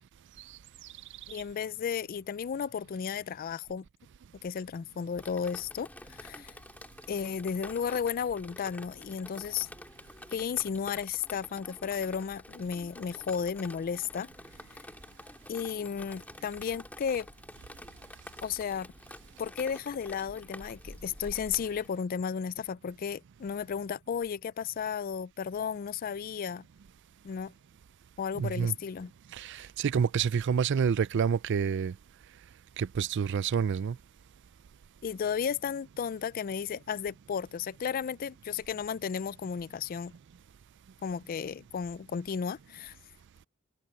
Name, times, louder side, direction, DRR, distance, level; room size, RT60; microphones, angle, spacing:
voice 1, 1.3-3.8 4.4-6.5 7.1-9.7 10.3-14.3 15.5-17.3 18.4-18.9 19.4-26.6 27.2-27.5 28.2-29.1 35.0-40.1 41.0-43.0, left 7 dB, 45° left, 0.3 m, -34 dB
Drip, 5.2-21.9, left 1 dB, 10° left, 2.1 m, -49 dB
voice 2, 28.3-28.7 29.3-31.9 32.8-34.0, right 7 dB, 60° right, 0.4 m, -28 dB
head